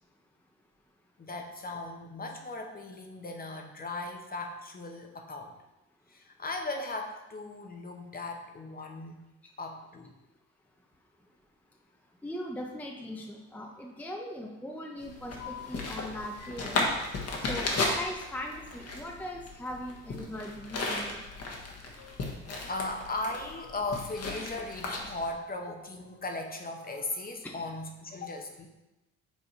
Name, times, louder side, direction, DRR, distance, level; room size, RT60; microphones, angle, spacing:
voice 1, 1.2-5.5 6.1-9.3 9.6-10.1 22.0-22.2 22.7-28.7, left 2 dB, 30° left, 3 dB, 0.9 m, -37 dB
voice 2, 12.2-16.8 17.4-21.2 27.4-27.5, equal, 5° left, 0 dB, 0.7 m, -40 dB
sound 1, 15.0-25.3, left 2 dB, 55° left, 1.3 m, -35 dB
7.1 x 3.5 x 4.4 m, 1.0 s
cardioid pair, 90°, 30 cm